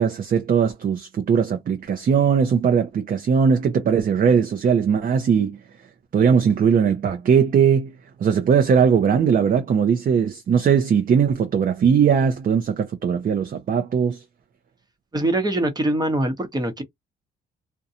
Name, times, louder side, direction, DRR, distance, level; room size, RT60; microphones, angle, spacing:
voice 1, 0.0-5.6 6.1-7.9 8.2-14.2, right 7 dB, 45° right, 0.5 m, -19 dB
voice 2, 15.1-16.8, right 1 dB, 20° right, 0.9 m, -23 dB
2.5 x 2.2 x 2.7 m
cardioid pair, 90°, 20 cm